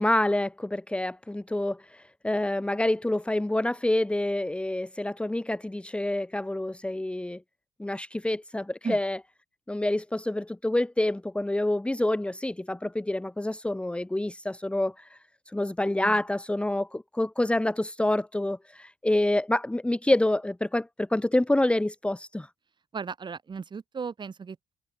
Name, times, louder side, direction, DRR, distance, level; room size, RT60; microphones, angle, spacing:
voice 1, 0.0-7.4 7.8-9.2 9.7-15.2 15.5-22.5, left 1 dB, 10° left, 1.5 m, -27 dB
voice 2, 22.9-24.8, right 5 dB, 40° right, 5.8 m, -36 dB
supercardioid pair, 70°, 12 cm